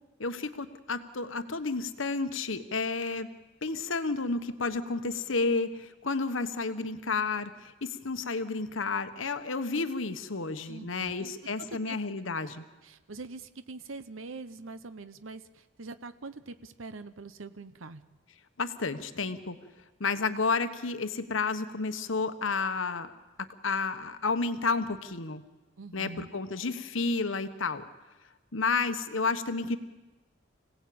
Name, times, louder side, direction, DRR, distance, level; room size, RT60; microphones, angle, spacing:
voice 1, 0.2-3.3 3.6-12.6 18.6-19.6 20.0-23.1 23.4-25.4 25.9-27.8 28.5-29.8, left 4 dB, 80° left, 10 dB, 1.2 m, -31 dB
voice 2, 10.7-11.3 11.7-12.0 12.8-18.0 25.8-26.3, right 3 dB, 90° right, 12 dB, 0.9 m, -44 dB
26.0 x 17.5 x 8.7 m, 1.2 s
head